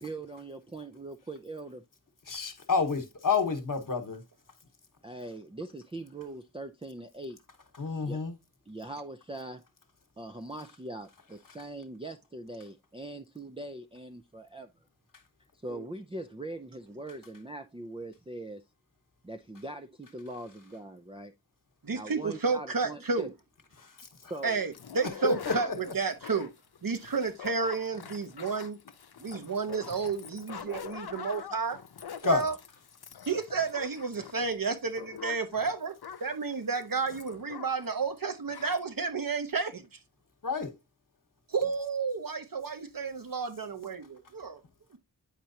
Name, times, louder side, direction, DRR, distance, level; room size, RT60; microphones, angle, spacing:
voice 1, 0.0-1.8 5.0-7.4 8.0-8.2 8.7-9.6 10.2-14.7 15.6-18.6 19.2-21.3 21.9-23.3 24.3-24.6, right 2 dB, 15° right, 0.5 m, -41 dB
voice 2, 2.3-4.2 7.8-8.3 23.8-24.3 25.2-25.9 32.2-32.4 40.4-40.7, left 5 dB, 60° left, 1.3 m, -29 dB
voice 3, 21.8-23.3 24.4-25.7 25.9-26.5 26.8-28.8 29.2-31.8 32.2-32.5 33.3-39.9 41.5-44.6, right 4 dB, 60° right, 1.1 m, -31 dB
sound 1, 24.7-37.9 38.2-38.3 38.5-38.8, left 8 dB, 80° left, 0.7 m, -45 dB
8.8 x 4.5 x 2.7 m
wide cardioid pair, 75°, 37 cm